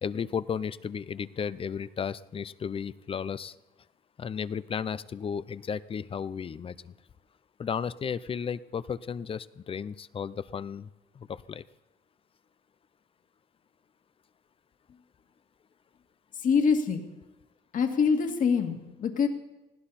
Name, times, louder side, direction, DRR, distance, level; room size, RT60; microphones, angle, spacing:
voice 1, 0.0-3.5 4.2-6.9 7.6-10.9 11.1-11.6, left 7 dB, 35° left, 17 dB, 0.6 m, -34 dB
voice 2, 16.4-17.0 17.7-19.3, left 6 dB, 50° left, 5 dB, 2.2 m, -25 dB
19.5 x 16.0 x 4.3 m, 1.0 s
cardioid pair, 110°, 17 cm